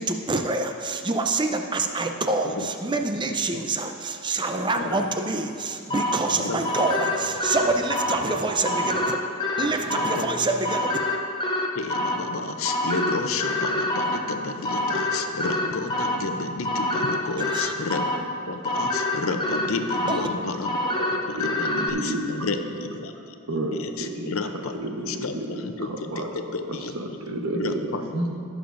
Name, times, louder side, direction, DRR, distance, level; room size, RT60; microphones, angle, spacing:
voice 1, 0.0-9.2 9.6-11.0 17.4-17.7 20.1-20.3, right 3 dB, 20° right, 5 dB, 0.5 m, -26 dB
sound 1, 5.9-21.9, left 1 dB, 20° left, 0.7 m, -27 dB
voice 2, 10.0-10.3 11.7-20.8 21.1-23.3 23.8-24.7 25.1-26.2 26.5-26.9 27.5-28.2, left 3 dB, 65° left, 6 dB, 0.6 m, -31 dB
voice 3, 21.3-22.3 23.5-24.3 24.8-26.3 26.9-28.3, right 1 dB, 75° right, 2 dB, 1.1 m, -30 dB
18.5 x 7.1 x 2.6 m, 2.5 s
head